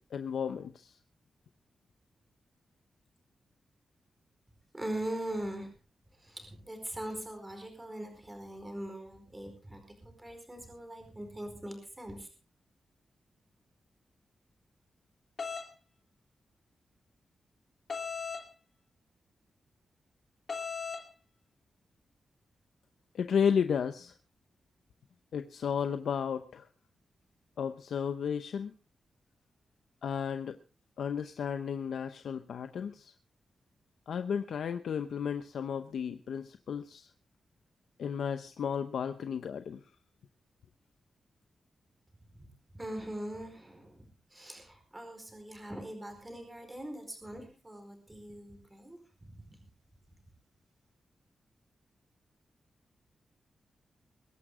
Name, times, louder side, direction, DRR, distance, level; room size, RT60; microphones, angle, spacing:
voice 1, 0.1-1.0 23.1-24.1 25.3-26.7 27.6-28.7 30.0-30.6 31.0-33.1 34.1-37.1 38.0-39.8, left 7 dB, 85° left, 9 dB, 0.8 m, -33 dB
voice 2, 4.7-5.7 6.2-12.3 42.7-49.6, right 1 dB, 15° right, 5 dB, 4.6 m, -41 dB
sound 1, 15.4-15.7 17.9-18.5 20.5-21.0, left 5 dB, 50° left, 2.5 m, -37 dB
22.5 x 11.0 x 3.7 m, 0.32 s
wide cardioid pair, 135°, 0 cm